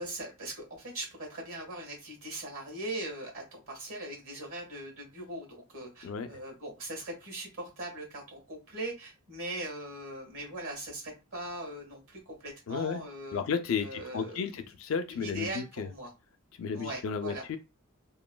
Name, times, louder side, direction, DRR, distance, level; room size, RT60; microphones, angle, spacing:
voice 1, 0.0-13.4 13.8-14.7 15.1-16.1 16.7-17.4, right 1 dB, 80° right, 1.4 m, -40 dB
voice 2, 12.7-13.0 13.3-15.9 16.6-17.6, left 6 dB, 65° left, 0.4 m, -33 dB
3.0 x 2.1 x 2.2 m
head